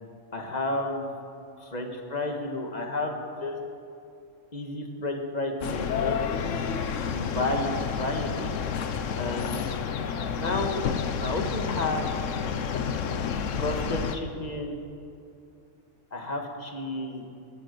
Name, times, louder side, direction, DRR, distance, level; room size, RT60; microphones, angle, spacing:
voice 1, 0.3-1.2 1.6-3.6 4.5-6.2 7.1-8.5 9.1-9.7 10.3-10.8 11.2-12.1 13.6-14.8 16.1-17.2, left 2 dB, 35° left, 3 dB, 1.7 m, -31 dB
sound 1, 5.6-14.2, left 6 dB, 80° left, 1.2 m, -30 dB
19.0 x 11.0 x 6.7 m, 2.6 s
omnidirectional pair, 1.3 m